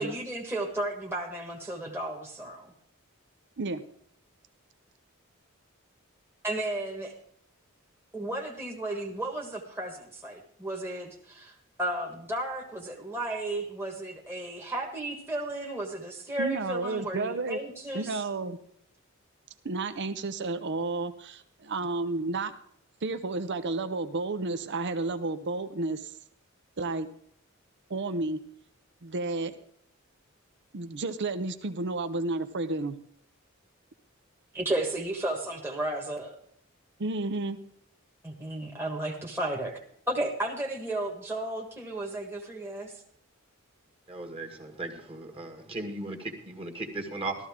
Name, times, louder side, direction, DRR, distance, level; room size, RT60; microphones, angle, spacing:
voice 1, 0.0-2.7 6.4-7.1 8.1-18.2 34.5-36.4 38.2-39.8 40.1-42.9, right 1 dB, 10° right, -2 dB, 1.5 m, -33 dB
voice 2, 16.4-17.6 17.9-18.6 19.6-22.5 23.0-26.1 26.8-27.1 27.9-28.4 29.0-29.5 30.7-33.0 37.0-37.6, right 3 dB, 55° right, 10 dB, 0.7 m, -31 dB
voice 3, 44.1-47.4, right 2 dB, 30° right, 2 dB, 1.8 m, -37 dB
13.5 x 13.5 x 3.6 m, 0.65 s
head